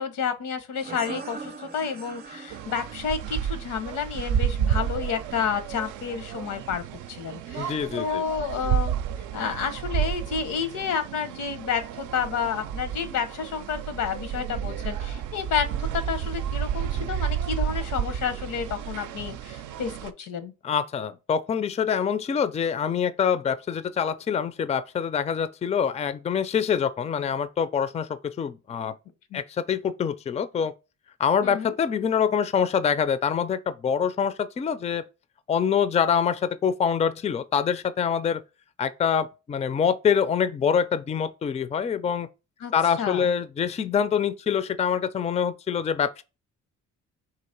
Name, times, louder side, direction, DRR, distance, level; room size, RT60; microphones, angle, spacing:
voice 1, 0.0-8.9 9.3-20.5 29.3-29.4 31.4-31.7 42.6-42.7 43.0-43.3, left 7 dB, 85° left, 0.8 m, -30 dB
sound 1, 0.8-6.1, right 5 dB, 35° right, 0.6 m, -43 dB
sound 2, 2.5-20.1, right 9 dB, 80° right, 0.5 m, -31 dB
voice 2, 7.6-8.2 20.6-28.9 29.3-30.7 31.2-35.0 35.5-38.4 38.8-42.3 42.7-46.2, left 7 dB, 20° left, 0.3 m, -25 dB
3.9 x 2.9 x 4.3 m
cardioid pair, 90°, 30 cm